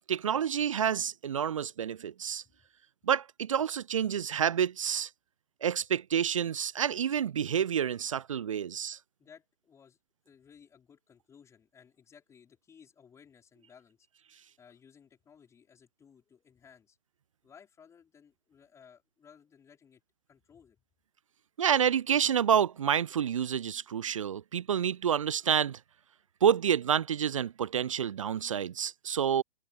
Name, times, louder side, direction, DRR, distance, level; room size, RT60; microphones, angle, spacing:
voice 1, 0.1-2.4 3.0-5.1 5.6-9.0 21.6-25.8 26.4-29.4, right 8 dB, 30° right, 0.6 m, -28 dB
voice 2, 9.2-10.0 10.2-14.1 14.6-17.0 17.4-20.0 20.3-20.8, left 7 dB, 10° left, 7.6 m, -58 dB
hypercardioid pair, 155°, 32 cm